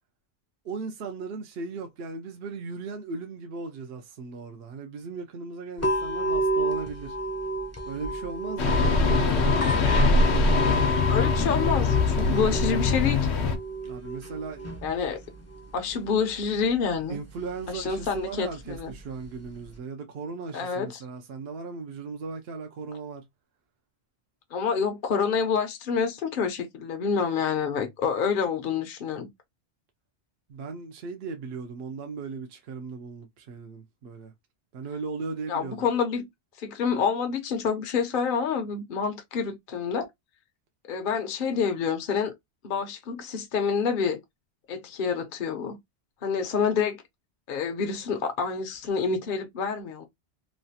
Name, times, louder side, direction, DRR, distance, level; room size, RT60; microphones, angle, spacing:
voice 1, 0.6-7.2 7.9-9.7 13.8-14.7 17.1-23.2 30.5-34.3 34.7-35.8, right 4 dB, 70° right, 0.8 m, -37 dB
sound 1, 5.8-19.8, right 1 dB, 20° left, 0.5 m, -32 dB
sound 2, 8.6-13.6, left 3 dB, 80° left, 1.0 m, -22 dB
voice 2, 11.1-13.4 14.8-15.2 15.7-17.2 17.7-18.9 20.5-21.0 24.5-29.3 35.5-36.3 36.6-40.1 40.9-42.3 42.6-44.2 44.7-45.8 46.2-47.0 47.5-50.0, left 6 dB, 55° left, 0.8 m, -27 dB
3.1 x 2.3 x 2.6 m
omnidirectional pair, 1.1 m